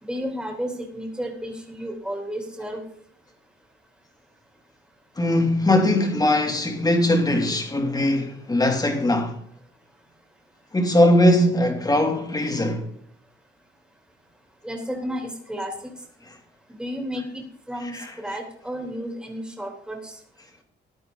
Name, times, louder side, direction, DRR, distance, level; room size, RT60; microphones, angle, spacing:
voice 1, 0.0-2.8 7.7-7.9 14.6-15.9 16.8-20.2, equal, 5° right, 3.3 m, -32 dB
voice 2, 5.2-9.4 10.7-12.9 17.9-18.1, left 1 dB, 20° left, 2.9 m, -20 dB
15.0 x 10.5 x 3.9 m
cardioid pair, 90°, 20 cm